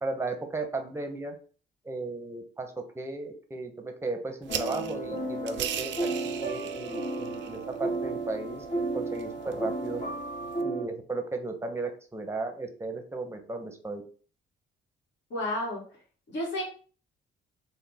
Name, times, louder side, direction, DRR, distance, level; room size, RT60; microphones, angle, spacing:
voice 1, 0.0-1.3 1.8-5.9 6.2-8.7 8.9-10.0 10.6-14.0, right 3 dB, 15° right, 5 dB, 0.7 m, -35 dB
sound 1, 4.4-10.6, right 10 dB, 70° right, 0.4 m, -40 dB
sound 2, 4.5-10.8, right 2 dB, 35° left, 1.5 m, -33 dB
voice 2, 15.3-15.8 16.3-16.6, left 1 dB, 65° left, -4 dB, 1.5 m, -31 dB
3.7 x 2.2 x 3.4 m, 0.41 s
cardioid pair, 90°, 20 cm